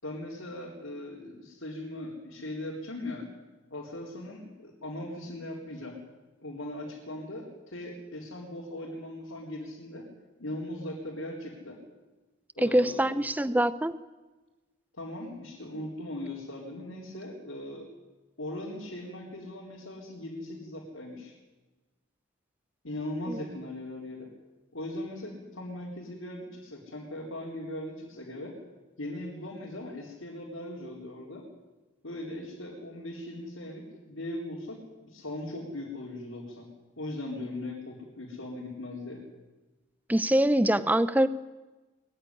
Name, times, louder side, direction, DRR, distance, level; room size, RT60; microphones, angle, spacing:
voice 1, 0.0-3.3 3.7-6.0 6.4-10.1 10.4-11.8 12.5-13.1 14.9-17.9 18.4-21.3 22.8-24.3 24.7-28.6 29.0-31.5 32.0-34.8 35.0-36.7 37.0-39.2, left 1 dB, 80° left, -2 dB, 4.1 m, -39 dB
voice 2, 12.6-14.0 23.3-23.4 40.1-41.3, right 1 dB, 10° right, 15 dB, 0.7 m, -24 dB
22.0 x 14.5 x 10.0 m, 1.2 s
head